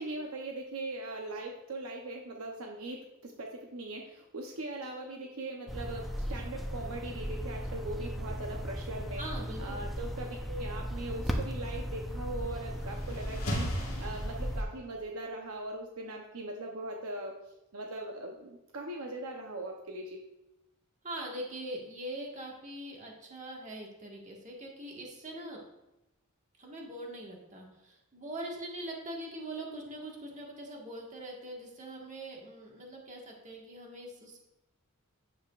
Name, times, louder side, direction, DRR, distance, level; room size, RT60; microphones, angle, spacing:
voice 1, 0.0-9.2 9.6-20.2, right 2 dB, 70° right, 1 dB, 0.8 m, -40 dB
sound 1, 5.7-14.6, equal, ahead, 0.7 m, -37 dB
voice 2, 9.2-9.9 21.0-25.6 26.6-34.4, right 1 dB, 35° right, -1 dB, 1.6 m, -42 dB
sound 2, 12.5-14.9, equal, 70° left, 1.9 m, -37 dB
9.8 x 7.1 x 2.5 m, 0.94 s
head